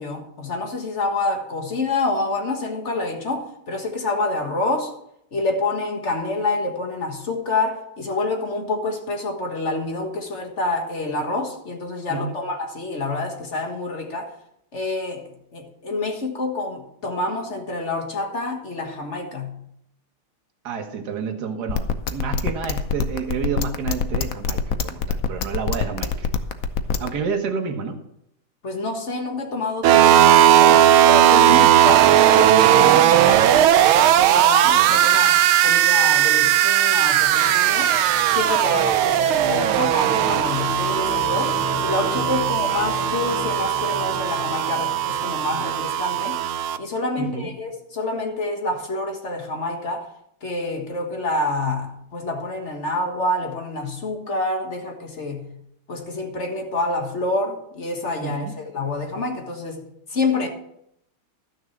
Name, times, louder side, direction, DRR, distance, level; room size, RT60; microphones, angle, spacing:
voice 1, 0.0-4.9 5.3-14.3 14.7-19.6 28.6-32.1 32.3-37.9 38.3-46.4 46.8-50.1 50.4-55.5 55.9-59.8 60.1-60.5, left 2 dB, 35° left, 1.6 m, -27 dB
voice 2, 20.6-26.3 27.0-28.0 31.5-31.8 47.2-47.5 58.2-58.5, right 5 dB, 50° right, 1.8 m, -29 dB
sound 1, 21.7-27.1, left 6 dB, 65° left, 0.8 m, -24 dB
sound 2, 29.8-46.8, right 11 dB, 75° right, 1.4 m, -17 dB
sound 3, 37.4-46.0, left 4 dB, 85° left, 2.8 m, -35 dB
13.0 x 6.4 x 7.3 m
omnidirectional pair, 2.4 m